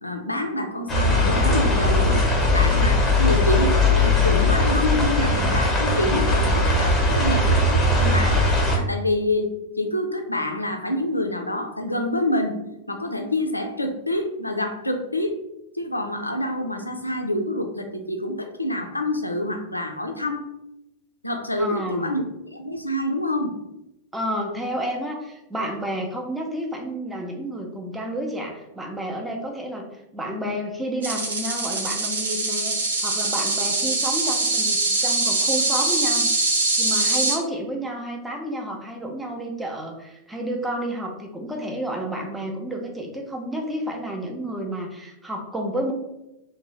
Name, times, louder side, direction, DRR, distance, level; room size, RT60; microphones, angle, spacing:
voice 1, 0.0-2.3 2.5-8.4 8.7-12.6 12.9-15.4 15.7-20.4 21.2-22.2 22.5-23.5, left 1 dB, 85° left, 5 dB, 0.3 m, -27 dB
sound 1, 0.9-8.8, left 2 dB, 15° left, 0.9 m, -19 dB
voice 2, 21.6-22.2 24.1-29.9 30.1-32.8 33.0-45.9, equal, 5° right, 1 dB, 0.5 m, -30 dB
sound 2, 31.0-37.4, right 3 dB, 70° right, 0.5 m, -23 dB
2.6 x 2.1 x 3.0 m, 0.89 s
figure-of-eight pair, 90°, 0 cm